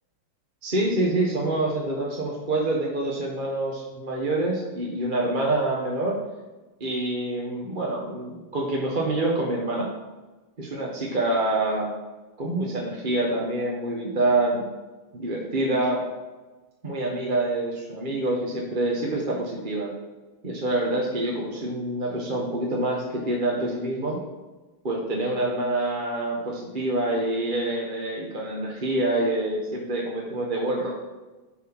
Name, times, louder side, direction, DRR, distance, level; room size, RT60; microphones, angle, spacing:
voice 1, 0.6-6.1 6.8-9.9 10.6-11.9 12.4-14.6 15.1-16.0 16.8-19.9 20.4-24.2 24.8-30.9, right 2 dB, 30° right, -3 dB, 1.2 m, -26 dB
10.0 x 5.1 x 5.3 m, 1.2 s
omnidirectional pair, 2.2 m